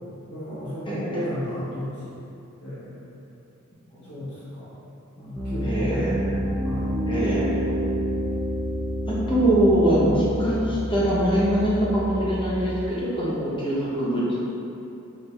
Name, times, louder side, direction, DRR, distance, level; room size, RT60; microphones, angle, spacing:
voice 1, 0.3-2.2 2.6-3.1 4.1-4.7 5.2-6.2 6.6-6.9, left 1 dB, 75° left, -14 dB, 1.2 m, -34 dB
voice 2, 0.9-1.2 3.9-4.0 5.6-6.4 7.1-7.5 9.1-14.4, right 1 dB, 25° left, -8 dB, 1.0 m, -23 dB
Piano, 5.3-12.8, equal, 5° left, 0.4 m, -28 dB
4.6 x 2.7 x 3.2 m, 2.8 s
head